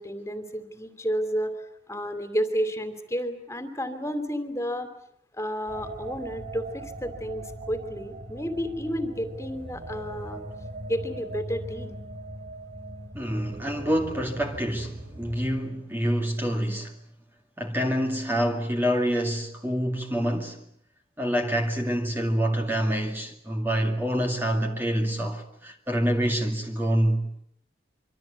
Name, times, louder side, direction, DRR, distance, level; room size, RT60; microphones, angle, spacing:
voice 1, 0.0-1.5 1.9-4.9 5.3-10.4 10.9-12.0, equal, 15° left, 3.1 m, -31 dB
sound 1, 5.7-15.5, right 1 dB, 50° right, 4.4 m, -40 dB
voice 2, 13.1-16.9 17.6-20.6 21.2-27.4, equal, 10° right, 2.3 m, -26 dB
26.5 x 25.0 x 8.4 m
head